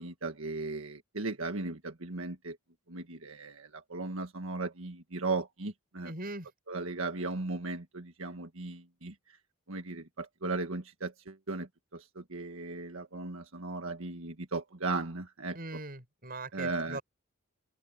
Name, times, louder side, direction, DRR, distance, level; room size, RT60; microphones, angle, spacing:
voice 1, 0.0-2.6 2.9-6.1 6.7-9.1 9.7-15.6 16.5-17.0, right 3 dB, 80° right, 1.6 m, -37 dB
voice 2, 6.0-6.5 15.5-17.0, right 2 dB, 45° right, 6.9 m, -40 dB
head